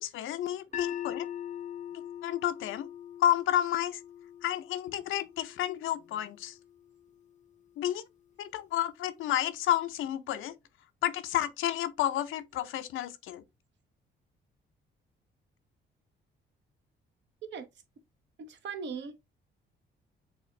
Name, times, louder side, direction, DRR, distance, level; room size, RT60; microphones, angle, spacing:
voice 1, 0.0-1.3 2.2-2.9 3.2-4.0 4.4-6.6 7.8-8.0 8.4-10.6 11.0-13.4, left 12 dB, 80° left, 0.6 m, -31 dB
sound 1, 0.7-6.9, left 10 dB, 40° left, 0.4 m, -42 dB
voice 2, 18.4-19.2, right 5 dB, 65° right, 0.9 m, -39 dB
6.6 x 2.4 x 3.1 m
cardioid pair, 90°, 20 cm